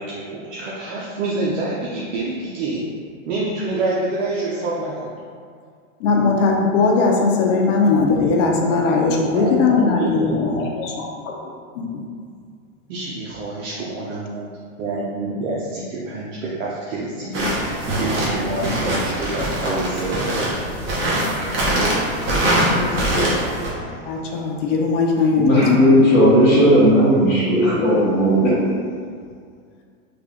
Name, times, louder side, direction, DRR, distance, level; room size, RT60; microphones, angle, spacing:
voice 1, 0.0-2.8 3.3-5.1 8.5-8.8 9.1-10.6 12.9-14.5 14.8-20.5, right 2 dB, 65° right, -6 dB, 0.7 m, -27 dB
voice 2, 6.0-11.5 11.8-12.0 22.6-23.4 23.7-26.0 27.8-28.7, left 4 dB, 60° left, 0 dB, 0.6 m, -20 dB
sound 1, 17.3-23.7, right 1 dB, 30° right, 0.8 m, -22 dB
voice 3, 25.3-28.6, equal, 20° left, -14 dB, 1.0 m, -15 dB
3.4 x 2.4 x 3.6 m, 2.1 s
supercardioid pair, 150°, 41 cm